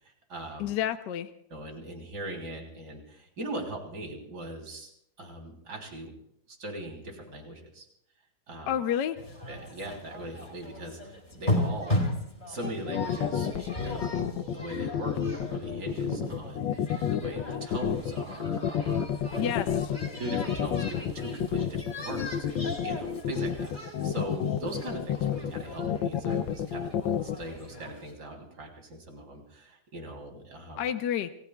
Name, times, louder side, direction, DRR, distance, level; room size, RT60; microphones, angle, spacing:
voice 1, 0.0-0.7 1.5-4.9 5.2-6.1 6.5-7.9 8.5-8.8 9.5-12.0 12.5-19.5 20.2-30.8, right 1 dB, 60° right, 1 dB, 4.0 m, -40 dB
voice 2, 0.6-1.3 8.7-9.2 19.4-19.7 30.8-31.3, left 10 dB, 70° left, 8 dB, 1.4 m, -29 dB
sound 1, 9.2-28.1, left 1 dB, 25° left, 3.8 m, -37 dB
sound 2, 12.6-27.4, left 8 dB, 90° left, 1.5 m, -30 dB
29.0 x 20.5 x 2.4 m, 0.74 s
omnidirectional pair, 2.0 m